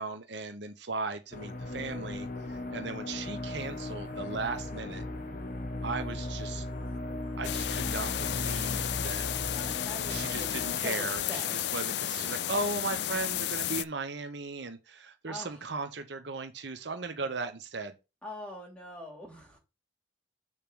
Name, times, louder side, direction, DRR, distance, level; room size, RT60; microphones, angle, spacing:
voice 1, 0.0-5.1 5.8-6.7 7.4-9.3 9.9-18.0, right 3 dB, 65° right, 0.8 m, -37 dB
sound 1, 1.3-10.8, left 1 dB, 45° left, 1.1 m, -37 dB
sound 2, 7.4-13.8, left 11 dB, 60° left, 0.4 m, -33 dB
voice 2, 8.9-11.5 15.3-15.5 18.2-19.6, left 1 dB, 5° left, 2.6 m, -44 dB
6.9 x 3.3 x 6.1 m
head